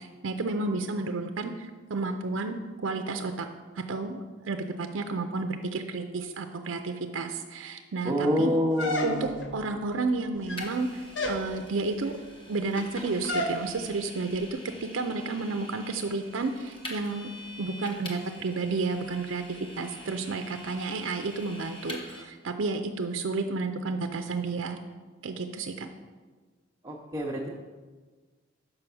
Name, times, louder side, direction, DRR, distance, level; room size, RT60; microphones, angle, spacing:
voice 1, 0.0-3.5 3.8-8.5 9.0-12.2 12.5-17.3 17.6-24.8 25.2-25.9, right 3 dB, 70° right, 6 dB, 0.5 m, -31 dB
voice 2, 8.0-9.4 26.8-27.5, equal, 20° right, -3 dB, 0.6 m, -27 dB
sound 1, 8.8-9.5 10.3-10.8 11.1-11.5 13.3-13.6, left 1 dB, 65° left, 0.9 m, -30 dB
Vehicle, 10.6-22.2, left 1 dB, 25° left, 1.1 m, -45 dB
5.8 x 5.6 x 6.8 m, 1.4 s
head